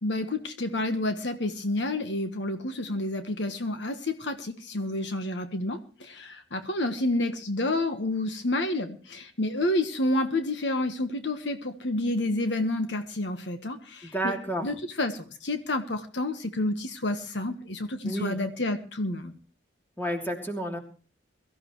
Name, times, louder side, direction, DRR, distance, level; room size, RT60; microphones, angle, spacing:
voice 1, 0.0-14.3 14.6-19.3, left 1 dB, 70° left, 8 dB, 1.3 m, -29 dB
voice 2, 14.0-14.7 18.0-18.4 20.0-20.8, right 1 dB, 10° left, 2 dB, 3.0 m, -30 dB
22.5 x 14.5 x 3.1 m, 0.37 s
head